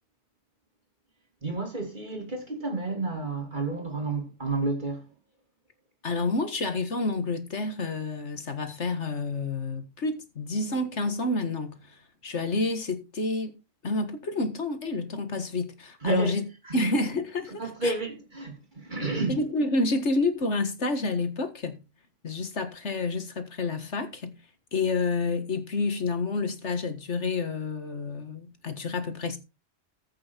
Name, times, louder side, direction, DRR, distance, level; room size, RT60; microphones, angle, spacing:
voice 1, 1.4-5.1 16.0-16.3 16.6-16.9 17.5-19.4, right 3 dB, 40° right, 2.9 m, -30 dB
voice 2, 6.0-11.8 12.2-13.6 13.8-16.4 16.7-17.9 19.3-21.8 22.2-24.4 24.7-29.4, left 3 dB, 70° left, 2.0 m, -29 dB
15.0 x 6.3 x 4.5 m
omnidirectional pair, 1.2 m